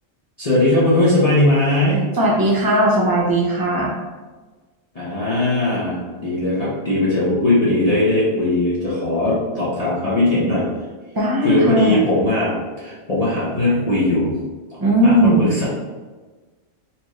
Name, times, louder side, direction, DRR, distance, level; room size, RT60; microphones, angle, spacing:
voice 1, 0.4-2.0 4.9-10.7 11.4-14.3 15.0-15.6, left 1 dB, 35° left, -10 dB, 0.8 m, -19 dB
voice 2, 2.2-3.9 11.1-12.0 14.8-15.5, right 1 dB, 30° right, -3 dB, 0.4 m, -17 dB
4.2 x 2.5 x 3.1 m, 1.3 s
omnidirectional pair, 1.4 m